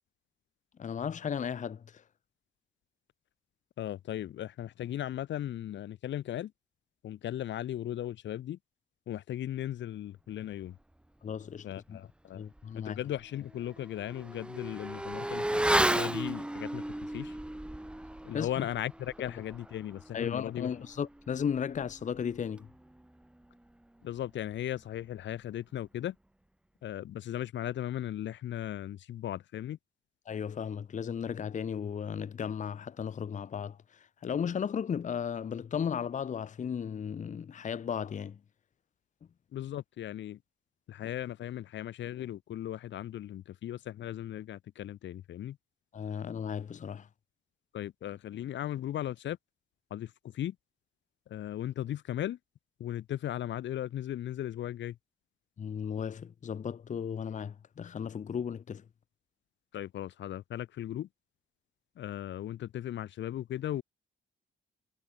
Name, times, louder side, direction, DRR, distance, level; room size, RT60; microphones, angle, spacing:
voice 1, 0.8-2.0 11.2-12.0 12.3-13.0 18.3-18.5 20.1-22.7 30.3-38.4 45.9-47.1 55.6-58.8, left 7 dB, 40° left, 0.8 m, -35 dB
voice 2, 3.8-6.5 7.0-8.6 9.1-10.8 11.6-12.5 12.8-17.4 18.2-20.7 24.0-26.1 26.8-29.8 39.5-40.4 40.9-45.6 47.7-49.4 49.9-50.5 51.3-52.4 52.8-55.0 59.7-61.1 62.0-63.8, left 12 dB, 65° left, 1.0 m, -37 dB
Motorcycle / Accelerating revving vroom, 12.6-12.7 13.1-23.1 23.3-23.4, right 1 dB, 5° right, 0.8 m, -34 dB
cardioid pair, 90°, 20 cm